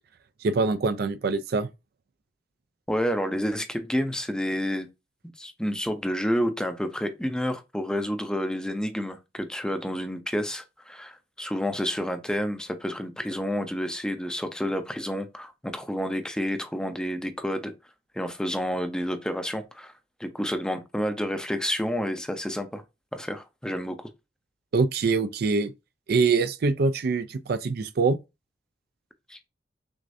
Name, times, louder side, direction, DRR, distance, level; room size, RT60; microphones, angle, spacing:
voice 1, 0.4-1.7 24.7-25.7 26.1-28.2, right 4 dB, 60° right, 0.4 m, -24 dB
voice 2, 2.9-4.9 5.4-17.7 18.1-19.9 20.2-22.8 23.1-24.1 29.3-29.4, equal, 5° left, 0.6 m, -29 dB
6.2 x 2.6 x 2.6 m
head